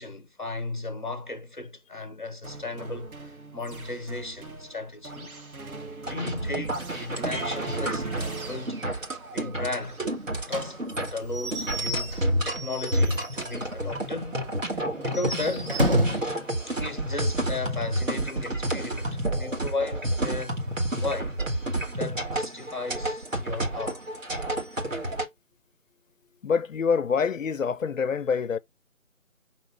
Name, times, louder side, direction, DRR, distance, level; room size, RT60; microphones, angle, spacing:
voice 1, 0.0-5.3 6.0-8.8 9.3-10.0 10.5-15.8 16.7-20.6 21.0-21.4 21.8-24.0, left 3 dB, 35° left, 0.8 m, -35 dB
sound 1, 2.4-12.2, right 3 dB, 80° right, 1.2 m, -40 dB
sound 2, 6.0-25.3, right 1 dB, 65° right, 1.7 m, -30 dB
Slam / Squeak / Wood, 10.5-13.7 14.0-14.1 14.4-14.5 15.0-16.3, equal, 40° right, 1.2 m, -30 dB
voice 2, 26.4-28.6, left 6 dB, 65° left, 0.5 m, -26 dB
5.8 x 2.8 x 3.2 m
figure-of-eight pair, 175°, 42 cm